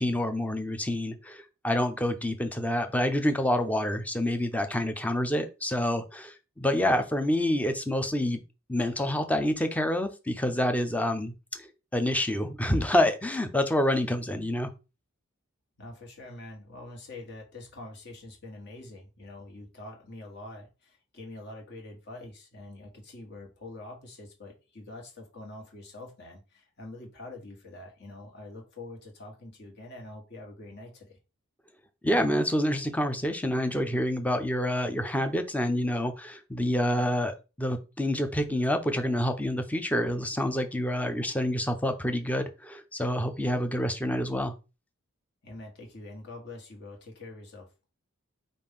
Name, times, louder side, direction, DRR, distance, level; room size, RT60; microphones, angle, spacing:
voice 1, 0.0-8.4 8.7-14.7 32.0-44.5, left 1 dB, 5° left, 7 dB, 0.5 m, -27 dB
voice 2, 15.8-31.2 45.4-47.7, left 2 dB, 55° left, 0 dB, 1.4 m, -45 dB
5.2 x 2.5 x 3.5 m, 0.29 s
head